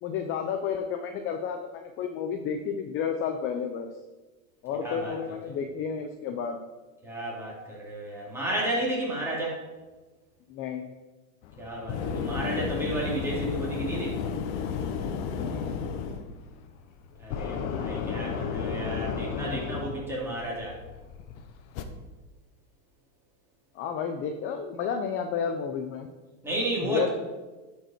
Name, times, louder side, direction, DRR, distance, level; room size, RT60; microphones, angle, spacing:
voice 1, 0.0-3.9 4.6-6.6 10.5-10.9 15.3-15.8 23.7-26.1 26.9-27.1, left 7 dB, 30° left, 6 dB, 0.6 m, -31 dB
voice 2, 4.8-5.2 5.4-5.6 7.0-9.6 11.6-14.3 17.2-20.8 26.4-27.1, right 1 dB, 5° right, -5 dB, 2.9 m, -32 dB
sound 1, 11.4-21.8, left 6 dB, 55° left, 1.0 m, -33 dB
11.0 x 5.3 x 4.4 m, 1.2 s
supercardioid pair, 140°, 42 cm